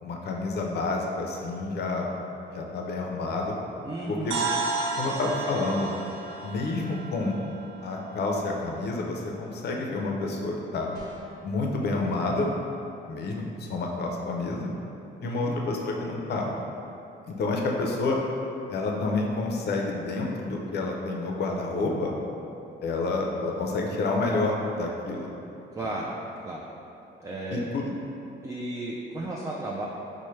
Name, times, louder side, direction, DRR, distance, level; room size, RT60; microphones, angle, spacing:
voice 1, 0.0-2.1 2.5-3.6 4.1-4.5 5.0-6.0 6.4-7.3 7.8-10.9 11.4-12.5 13.1-14.7 15.2-16.5 17.3-18.2 18.7-22.1 22.8-25.3 27.5-27.9, left 3 dB, 55° left, 0 dB, 0.5 m, -29 dB
voice 2, 3.8-4.4 15.2-15.6 25.7-26.1 26.4-26.6 27.2-27.7 28.4-29.8, right 2 dB, 15° right, -4 dB, 0.3 m, -34 dB
sound 1, 4.3-8.3, right 3 dB, 75° right, 0.4 m, -32 dB
sound 2, 10.9-11.5, right 1 dB, 20° left, 0.8 m, -45 dB
4.2 x 2.1 x 3.1 m, 2.8 s
cardioid pair, 90°, 20 cm